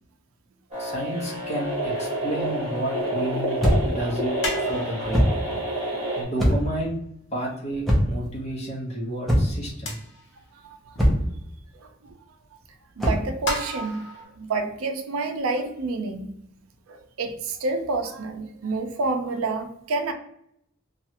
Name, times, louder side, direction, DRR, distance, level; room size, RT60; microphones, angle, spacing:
sound 1, 0.7-6.2, right 1 dB, 30° right, 1.3 m, -28 dB
voice 1, 0.8-5.3 6.2-7.0 7.3-10.0, right 1 dB, 30° left, -4 dB, 0.8 m, -31 dB
sound 2, 2.2-2.3 3.3-3.4 4.4-6.1 6.6-6.7 7.7-7.8 8.8-8.9 9.8-10.5 11.0-11.1 12.1-12.2 13.2-14.2, left 1 dB, 55° left, 0.7 m, -34 dB
sound 3, 3.6-4.0 5.1-5.4 6.4-6.8 7.9-8.3 9.3-9.7 11.0-11.4 13.0-13.3, equal, ahead, 0.6 m, -21 dB
voice 2, 10.6-11.0 11.7-11.9 13.0-14.0 14.4-16.3 16.9-20.1, right 3 dB, 80° right, 6 dB, 0.4 m, -28 dB
3.0 x 2.3 x 2.8 m, 0.74 s
head